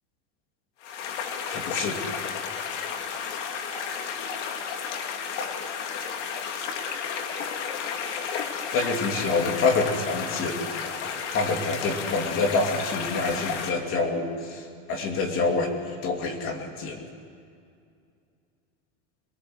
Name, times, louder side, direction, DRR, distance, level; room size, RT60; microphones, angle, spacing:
sound 1, 0.8-13.7, left 6 dB, 85° left, 2.5 m, -32 dB
voice 1, 1.5-2.0 6.6-6.7 8.7-10.6 11.3-17.0, left 3 dB, 40° left, 3 dB, 2.8 m, -27 dB
22.5 x 22.0 x 7.9 m, 2.4 s
supercardioid pair, 155°, 35 cm